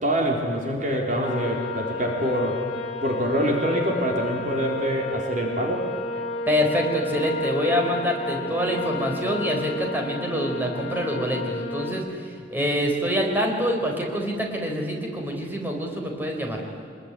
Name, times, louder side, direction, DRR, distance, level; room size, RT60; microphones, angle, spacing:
voice 1, 0.0-2.6 3.0-5.9, equal, 45° right, 1 dB, 4.0 m, -25 dB
sound 1, 1.2-11.9, left 2 dB, 35° left, 4.1 m, -32 dB
voice 2, 6.5-16.6, equal, 10° right, 1 dB, 4.2 m, -26 dB
24.5 x 21.5 x 9.9 m, 2.5 s
head